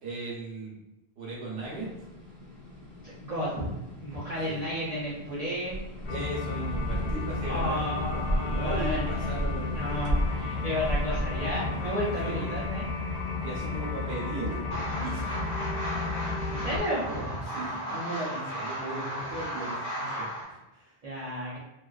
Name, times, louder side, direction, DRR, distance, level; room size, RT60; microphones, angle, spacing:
voice 1, 0.0-0.7 1.2-1.9 4.5-4.6 6.1-10.0 12.2-12.5 13.4-14.6 15.0-15.4 17.0-21.0, right 2 dB, 75° right, -4 dB, 1.0 m, -37 dB
sound 1, 1.6-16.8, equal, 40° left, 1.1 m, -36 dB
voice 2, 3.0-3.7 4.0-5.8 7.5-9.1 9.7-12.9 16.5-17.3 18.8-19.0 21.0-21.6, equal, 45° right, -8 dB, 0.6 m, -32 dB
sound 2, 6.1-16.8, left 3 dB, 80° left, 0.8 m, -33 dB
sound 3, 14.7-20.5, equal, 60° left, 1.0 m, -35 dB
2.5 x 2.3 x 2.3 m, 0.95 s
omnidirectional pair, 1.1 m